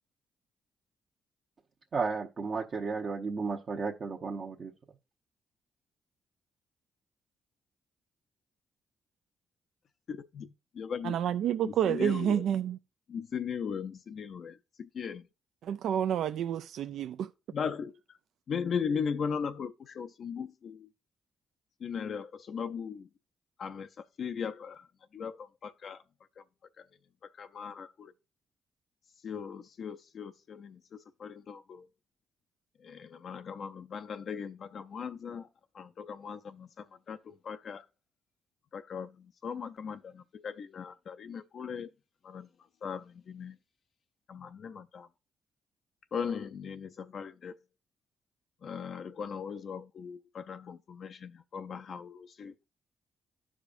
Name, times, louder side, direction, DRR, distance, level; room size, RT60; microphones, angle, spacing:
voice 1, 1.9-4.7, right 4 dB, 50° right, 0.9 m, -33 dB
voice 2, 10.1-11.2 11.6-12.5 13.1-15.3 17.5-18.2 18.5-20.9 21.8-23.1 23.6-24.9 25.1-26.0 26.4-26.5 26.8-26.9 27.2-28.1 29.2-31.9 32.8-35.5 35.7-37.9 38.7-41.9 42.2-43.6 44.3-45.1 46.1-47.6 48.6-52.6, left 6 dB, 60° left, 0.4 m, -38 dB
voice 3, 11.0-12.8 15.6-17.3, right 9 dB, 80° right, 0.3 m, -29 dB
14.0 x 5.0 x 2.5 m
cardioid pair, 85°, 0 cm